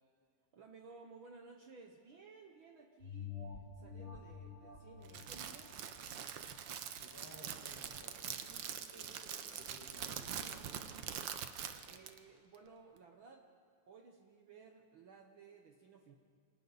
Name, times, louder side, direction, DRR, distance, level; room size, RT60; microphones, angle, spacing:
voice 1, 0.5-3.4 3.8-5.7 11.9-13.5 13.9-16.2, right 4 dB, 60° right, 4 dB, 1.4 m, -57 dB
sound 1, 3.0-7.9 8.4-8.5, left 6 dB, 30° left, 1.4 m, -50 dB
Crackle, 5.0-12.2, right 8 dB, 80° right, 1.0 m, -44 dB
voice 2, 7.0-10.8, equal, 5° right, -3 dB, 4.2 m, -58 dB
28.5 x 25.5 x 4.0 m, 2.2 s
omnidirectional pair, 3.3 m